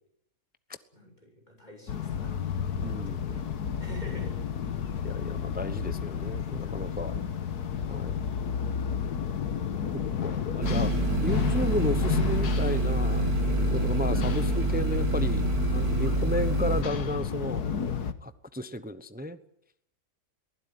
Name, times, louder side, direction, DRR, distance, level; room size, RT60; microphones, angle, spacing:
voice 1, 0.9-2.6 2.8-3.4 3.8-4.4 5.0-5.5 7.1-7.5, equal, 25° left, 2 dB, 7.2 m, -48 dB
sound 1, 1.9-18.1, left 7 dB, 85° left, 1.7 m, -31 dB
voice 2, 2.8-3.4 5.0-7.1 7.8-8.2 10.2-10.9 11.2-13.3 13.7-17.6 18.2-19.4, left 1 dB, 10° right, 12 dB, 0.7 m, -33 dB
sound 2, 10.6-16.8, right 3 dB, 70° right, 2.1 m, -27 dB
22.5 x 16.0 x 9.3 m, 0.75 s
omnidirectional pair, 1.6 m